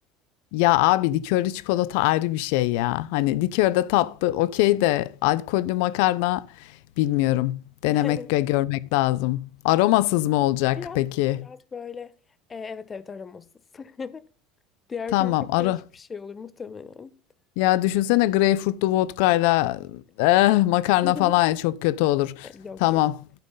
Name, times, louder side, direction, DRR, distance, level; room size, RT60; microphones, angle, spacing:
voice 1, 0.5-6.5 7.0-11.4 15.1-15.8 17.6-22.5 22.8-23.2, left 16 dB, 75° left, 0.5 m, -22 dB
voice 2, 7.9-8.3 10.8-11.0 11.4-12.1 12.5-13.5 13.7-14.2 14.9-15.3 15.6-17.1 21.0-21.3 22.4-23.0, left 5 dB, 25° left, 0.8 m, -37 dB
11.5 x 4.4 x 5.3 m
supercardioid pair, 95°, 0 cm